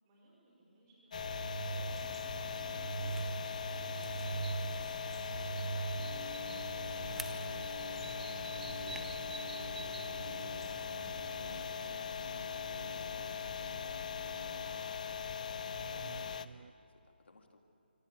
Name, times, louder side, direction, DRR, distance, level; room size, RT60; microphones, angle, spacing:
voice 1, 0.0-15.2, right 1 dB, 20° right, -4 dB, 5.2 m, -62 dB
sound 1, 1.1-16.5, left 7 dB, 40° left, 0.7 m, -40 dB
sound 2, 1.1-16.7, right 5 dB, 55° right, 0.5 m, -44 dB
sound 3, 1.6-11.9, right 3 dB, 5° right, 0.6 m, -52 dB
voice 2, 15.8-17.6, left 2 dB, 90° left, 3 dB, 3.4 m, -62 dB
25.5 x 25.0 x 7.2 m, 2.8 s
hypercardioid pair, 165°, 6 cm